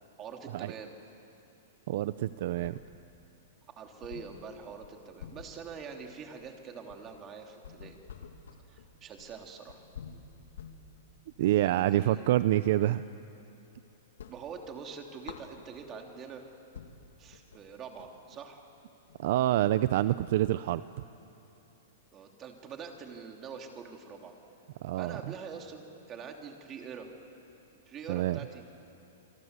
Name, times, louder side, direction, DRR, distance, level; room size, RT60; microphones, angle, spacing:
voice 1, 0.2-1.0 3.8-8.0 8.7-9.9 11.6-12.5 14.3-16.4 17.2-18.6 22.1-24.3 25.0-27.1 27.9-28.6, right 6 dB, 25° right, 3 dB, 3.0 m, -44 dB
voice 2, 1.9-2.8 11.4-13.1 19.2-20.8 24.8-25.2 28.1-28.4, right 14 dB, 55° right, 15 dB, 0.6 m, -27 dB
sound 1, 2.1-3.3 3.6-3.7 4.0-12.6 13.0-13.8 14.0-16.0 16.5-16.6 16.7-20.9, left 7 dB, 85° left, 2.4 m, -50 dB
27.0 x 24.5 x 8.2 m, 2.9 s
hypercardioid pair, 150°, 0 cm